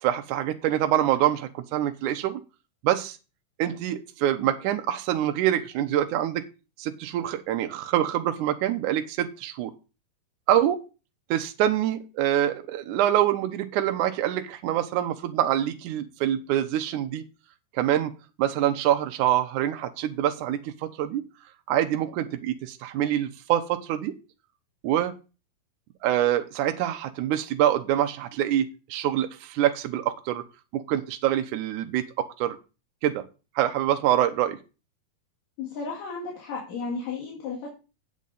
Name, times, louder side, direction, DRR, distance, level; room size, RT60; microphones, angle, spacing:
voice 1, 0.0-2.4 2.8-3.2 3.6-6.4 6.8-9.7 10.5-10.8 11.3-17.2 17.7-18.1 18.4-21.2 21.7-24.1 24.8-25.1 26.0-30.4 30.7-32.6 33.0-33.2 33.6-34.6, right 12 dB, 75° right, 7 dB, 2.1 m, -25 dB
voice 2, 35.6-37.7, left 4 dB, 75° left, -2 dB, 3.7 m, -33 dB
9.0 x 8.4 x 4.1 m, 0.31 s
omnidirectional pair, 4.0 m